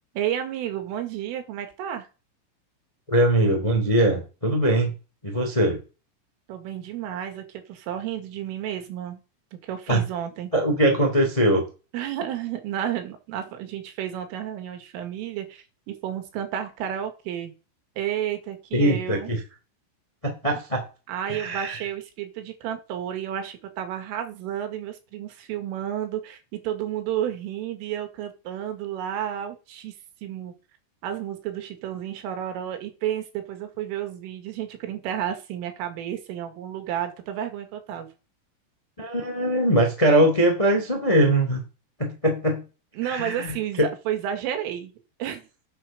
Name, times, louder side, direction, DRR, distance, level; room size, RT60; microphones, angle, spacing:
voice 1, 0.2-2.1 6.5-9.2 9.6-10.5 11.9-17.5 18.0-19.3 21.1-29.9 30.2-30.5 31.0-38.1 43.0-44.9 45.2-45.5, right 10 dB, 80° right, 6 dB, 4.4 m, -31 dB
voice 2, 3.1-4.9 5.2-5.8 9.9-10.0 10.5-11.6 18.7-19.4 20.2-20.8 21.3-21.8 39.0-41.6 42.0-42.6 43.0-43.9, right 1 dB, 50° left, 3 dB, 0.4 m, -21 dB
10.0 x 6.4 x 6.5 m, 0.32 s
omnidirectional pair, 5.9 m